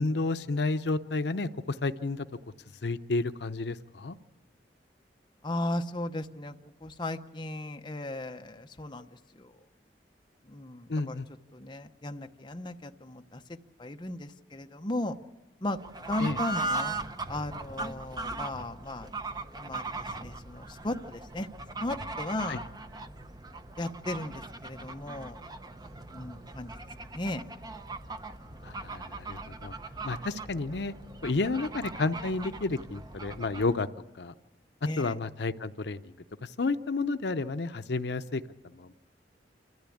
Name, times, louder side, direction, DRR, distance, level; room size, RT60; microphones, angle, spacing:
voice 1, 0.0-2.3 2.8-4.2 10.9-11.3 16.2-16.4 22.5-22.6 28.6-29.8 30.0-30.9 31.2-33.9 34.2-34.3 35.0-36.1 36.4-38.4 38.8-38.9, left 3 dB, 70° left, 10 dB, 0.7 m, -31 dB
voice 2, 5.4-6.5 6.8-9.5 10.5-11.2 11.5-13.4 13.8-15.2 15.6-15.8 16.1-17.0 17.3-19.1 19.6-21.5 21.8-22.6 23.8-25.4 26.1-26.7 27.1-27.4 34.9-35.2, left 1 dB, 25° left, 5 dB, 0.8 m, -36 dB
Fowl / Bird, 15.8-33.8, right 3 dB, 25° right, 0.8 m, -39 dB
27.5 x 14.0 x 8.6 m, 1.2 s
head